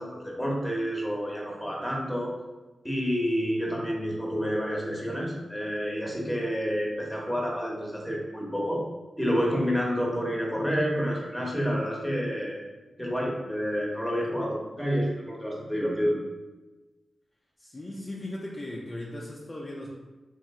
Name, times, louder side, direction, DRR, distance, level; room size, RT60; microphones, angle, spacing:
voice 1, 0.0-2.3 2.8-8.8 9.2-12.6 13.0-16.2, equal, 5° left, -2 dB, 1.0 m, -29 dB
voice 2, 17.6-19.9, left 1 dB, 35° left, -4 dB, 0.5 m, -37 dB
3.1 x 2.7 x 3.6 m, 1.2 s
cardioid pair, 50°, 0 cm